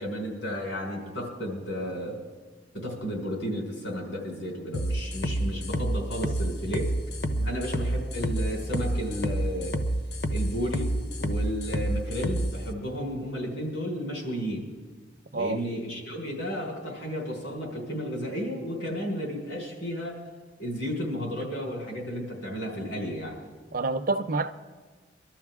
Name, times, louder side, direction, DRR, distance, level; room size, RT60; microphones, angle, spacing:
voice 1, 0.0-2.2 2.7-6.9 7.4-9.8 10.3-10.9 11.2-14.7 15.3-20.2 20.6-23.4, equal, 85° left, 4.8 m, -33 dB
sound 1, 4.7-12.5, right 1 dB, 60° left, 0.9 m, -28 dB
voice 2, 23.7-24.5, right 3 dB, 50° right, 0.5 m, -28 dB
23.0 x 13.0 x 3.6 m
head